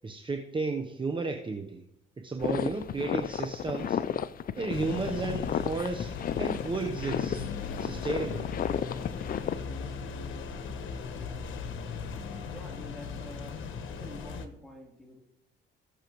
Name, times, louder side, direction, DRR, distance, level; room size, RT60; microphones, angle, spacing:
voice 1, 0.0-1.8 2.2-4.0 4.5-7.4 7.7-8.5, right 3 dB, 25° right, 3 dB, 1.0 m, -33 dB
sound 1, 2.4-9.5, left 8 dB, 45° left, 0.5 m, -33 dB
sound 2, 4.7-14.5, left 5 dB, 80° left, 1.2 m, -38 dB
voice 2, 12.5-15.2, equal, ahead, -2 dB, 3.4 m, -48 dB
19.5 x 6.7 x 3.1 m, 0.81 s
cardioid pair, 90°, 20 cm